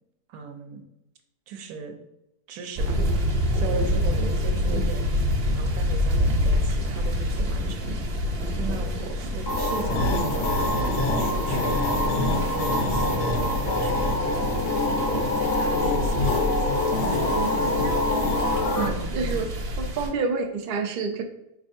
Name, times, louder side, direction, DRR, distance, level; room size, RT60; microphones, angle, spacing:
voice 1, 0.3-0.8 1.5-2.0 2.5-3.0 3.5-5.0 5.5-8.0 8.6-11.8 12.3-14.6 15.0-16.7 18.7-19.2, right 4 dB, 75° right, 6 dB, 1.1 m, -37 dB
sound 1, 2.8-20.1, left 1 dB, 50° right, 0.7 m, -27 dB
sound 2, 9.5-18.9, left 2 dB, 85° left, 1.2 m, -25 dB
voice 2, 17.3-18.1 18.7-19.5 19.8-21.2, right 4 dB, 90° right, 4 dB, 0.4 m, -29 dB
4.3 x 3.3 x 2.6 m, 0.88 s
omnidirectional pair, 1.7 m